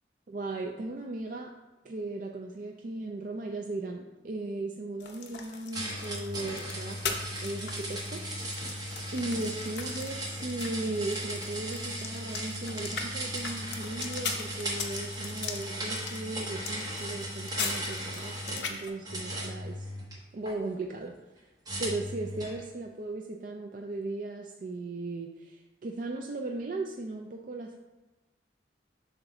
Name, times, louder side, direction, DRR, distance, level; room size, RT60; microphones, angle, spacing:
voice 1, 0.3-1.5 1.8-8.2 9.1-19.9 20.3-21.1 21.8-27.8, right 2 dB, 45° right, 2 dB, 0.4 m, -37 dB
sound 1, 5.0-18.9, left 5 dB, 70° left, 0.8 m, -41 dB
sound 2, 5.7-18.7 19.1-20.6 21.7-22.6, right 1 dB, 20° right, 1.0 m, -37 dB
7.6 x 2.6 x 5.8 m, 1.1 s
head